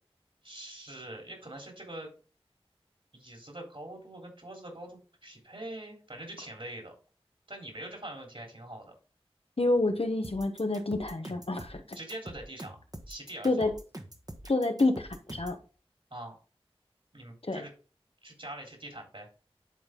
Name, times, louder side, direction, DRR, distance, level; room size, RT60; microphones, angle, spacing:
voice 1, 0.4-2.1 3.1-6.9 7.5-8.9 11.9-13.7 16.1-16.4 17.1-17.7 18.2-19.3, right 1 dB, 60° right, 3.5 m, -44 dB
voice 2, 9.6-11.8 13.4-13.7 14.5-15.6 17.4-17.6, left 2 dB, 70° left, 1.1 m, -28 dB
sound 1, 10.2-15.6, right 1 dB, 40° right, 1.3 m, -45 dB
10.5 x 4.0 x 3.7 m
wide cardioid pair, 40°, 10 cm